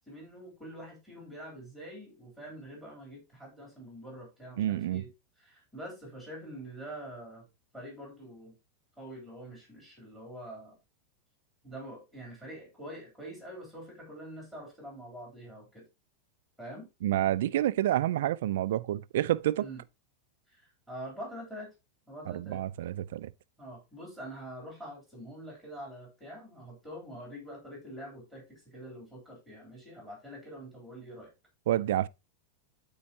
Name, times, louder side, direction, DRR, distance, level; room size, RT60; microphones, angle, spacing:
voice 1, 0.1-5.1 5.4-7.5 7.7-8.6 9.0-10.8 11.6-15.8 16.6-16.9 19.6-19.8 20.5-21.7 22.1-22.6 23.6-31.3, right 1 dB, ahead, 3.4 m, -45 dB
voice 2, 4.6-5.0 17.0-19.7 22.3-23.3 31.7-32.1, right 13 dB, 70° right, 0.4 m, -28 dB
13.0 x 4.5 x 2.8 m
supercardioid pair, 170°, 0 cm